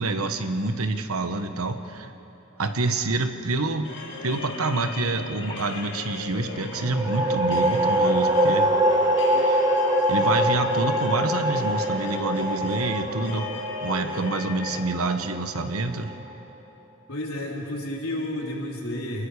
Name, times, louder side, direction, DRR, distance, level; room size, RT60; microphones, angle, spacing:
voice 1, 0.0-2.1 2.6-3.9 4.2-8.7 9.4-9.7 10.1-13.5 13.8-16.1, right 2 dB, 85° right, 8 dB, 1.2 m, -27 dB
sound 1, 3.8-14.8, left 4 dB, 60° left, 2.2 m, -37 dB
sound 2, 6.8-16.2, right 1 dB, 20° right, 1.2 m, -24 dB
voice 2, 17.1-19.3, left 1 dB, 80° left, -2 dB, 3.7 m, -31 dB
28.0 x 20.0 x 4.9 m, 3.0 s
head